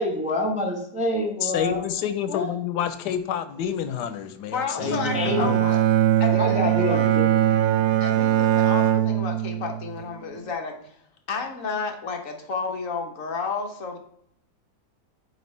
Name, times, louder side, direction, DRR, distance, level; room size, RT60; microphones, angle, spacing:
voice 1, 0.0-1.9 2.3-2.5 4.8-5.7 6.3-7.5, left 1 dB, 5° right, 0 dB, 0.9 m, -27 dB
voice 2, 1.4-5.7, left 9 dB, 90° left, 11 dB, 1.2 m, -28 dB
voice 3, 4.5-5.8 6.2-7.2 8.0-11.0 11.3-14.0, left 4 dB, 55° left, 3 dB, 1.3 m, -31 dB
Bowed string instrument, 4.8-10.0, right 11 dB, 75° right, 1.1 m, -21 dB
8.0 x 4.5 x 3.2 m, 0.71 s
omnidirectional pair, 1.7 m